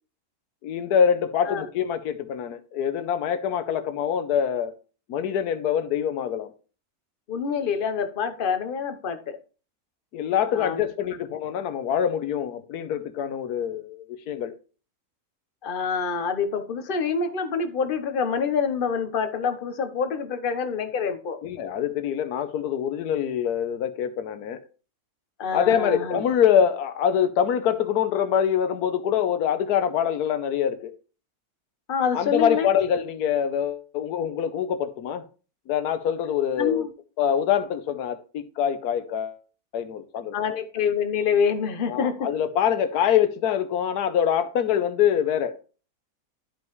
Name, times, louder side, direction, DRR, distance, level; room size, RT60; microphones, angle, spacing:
voice 1, 0.6-4.7 5.1-6.5 10.1-14.5 21.4-24.6 25.5-30.9 32.1-35.2 35.7-36.9 37.2-39.4 39.7-40.4 41.9-45.6, left 8 dB, 80° left, 1.3 m, -24 dB
voice 2, 7.3-9.4 10.5-10.8 15.6-21.4 25.4-26.2 31.9-32.7 36.6-36.9 40.3-42.3, left 6 dB, 40° left, 0.9 m, -26 dB
12.0 x 5.3 x 3.1 m
omnidirectional pair, 1.6 m